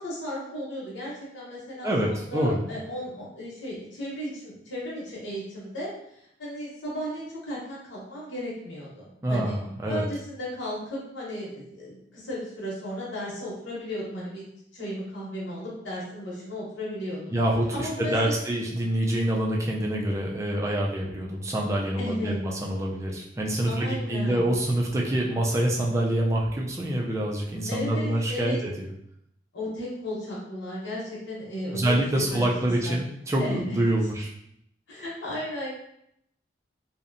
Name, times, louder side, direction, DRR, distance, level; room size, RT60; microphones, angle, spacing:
voice 1, 0.0-9.6 9.9-14.4 14.7-17.4 17.7-18.4 22.0-22.4 23.7-24.5 27.7-28.6 29.5-31.9 32.3-33.0 33.4-33.8 34.9-35.7, left 1 dB, 85° left, -7 dB, 0.9 m, -35 dB
voice 2, 1.8-2.6 9.2-10.0 17.3-28.9 31.7-34.3, right 1 dB, 15° right, -2 dB, 0.3 m, -26 dB
2.6 x 2.1 x 2.5 m, 0.74 s
head